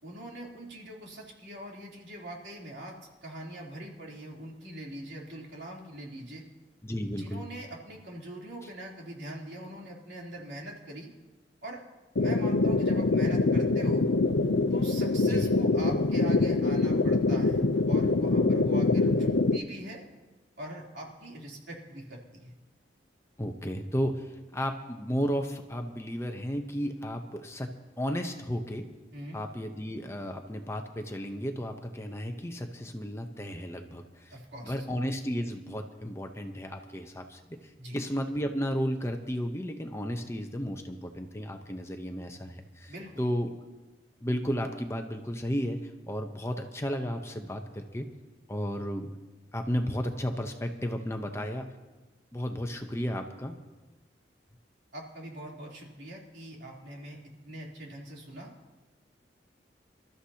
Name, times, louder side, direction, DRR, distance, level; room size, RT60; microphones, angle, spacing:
voice 1, 0.0-3.0 3.2-6.4 7.1-11.1 11.6-11.8 12.2-14.0 14.7-20.0 20.6-22.5 29.1-29.4 34.3-34.7 37.8-38.0 42.9-43.2 54.9-58.5, right 1 dB, 75° right, -3 dB, 3.3 m, -42 dB
voice 2, 6.8-7.4 15.2-15.5 23.4-28.9 29.3-34.3 34.6-37.6 37.9-43.6 44.2-48.1 48.5-49.1 49.5-51.7 52.3-53.6, equal, 15° left, 5 dB, 0.8 m, -33 dB
sound 1, 12.2-19.6, left 3 dB, 90° left, 0.7 m, -24 dB
26.5 x 13.0 x 2.9 m, 1.2 s
head